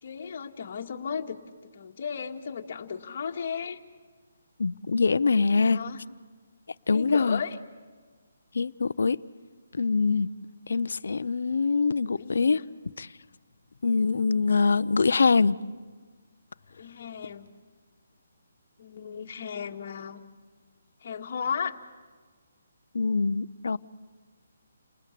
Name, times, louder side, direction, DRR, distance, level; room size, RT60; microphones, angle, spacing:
voice 1, 0.0-1.4 1.7-3.8 5.3-6.0 6.9-7.6 12.1-12.6 16.7-17.5 18.8-20.2 21.0-21.8, left 6 dB, 50° left, 1.9 m, -35 dB
voice 2, 4.6-5.8 6.9-7.4 8.5-9.2 9.7-10.3 10.7-12.6 13.0-13.1 13.8-15.6 22.9-23.8, left 4 dB, 75° left, 0.7 m, -24 dB
29.5 x 20.0 x 8.6 m
hypercardioid pair, 160°, 0 cm